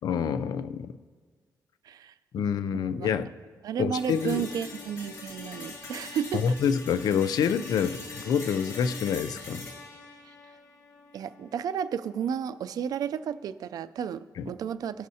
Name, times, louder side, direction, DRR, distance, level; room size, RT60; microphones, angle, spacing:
voice 1, 0.0-1.0 2.3-3.3 3.8-4.5 6.4-9.7 14.4-14.5, left 7 dB, 80° left, 13 dB, 0.4 m, -27 dB
voice 2, 2.7-3.1 3.6-6.4 10.2-10.3 11.1-15.1, right 8 dB, 80° right, 13 dB, 0.4 m, -32 dB
sound 1, 4.0-12.0, left 3 dB, 45° left, 1.8 m, -43 dB
18.5 x 6.3 x 2.8 m, 1.5 s
cardioid pair, 110°, 6 cm